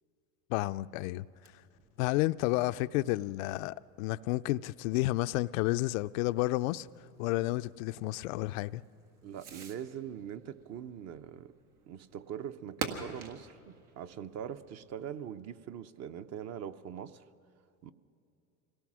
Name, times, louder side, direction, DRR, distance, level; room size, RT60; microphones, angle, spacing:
voice 1, 0.5-1.3 2.0-6.9 7.2-8.8, left 18 dB, 70° left, 0.5 m, -31 dB
Fireworks, 0.7-15.3, right 5 dB, 90° right, 2.0 m, -50 dB
voice 2, 9.2-11.5 11.9-17.2 17.8-17.9, right 9 dB, 40° right, 0.7 m, -42 dB
25.5 x 18.0 x 6.1 m
supercardioid pair, 110°, 42 cm